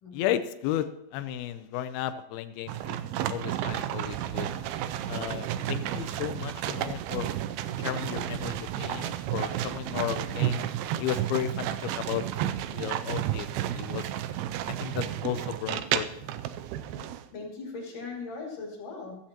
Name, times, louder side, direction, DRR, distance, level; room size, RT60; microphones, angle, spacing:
voice 1, 0.1-3.0 3.3-4.5 5.1-7.3 7.8-10.7 11.0-12.2 12.7-14.1 14.7-16.3, left 11 dB, 80° left, 9 dB, 2.3 m, -34 dB
sound 1, 2.7-17.2, right 11 dB, 90° right, 2.1 m, -32 dB
voice 2, 16.8-19.2, left 3 dB, 55° left, -1 dB, 3.9 m, -40 dB
14.5 x 14.5 x 2.9 m, 0.85 s
omnidirectional pair, 4.9 m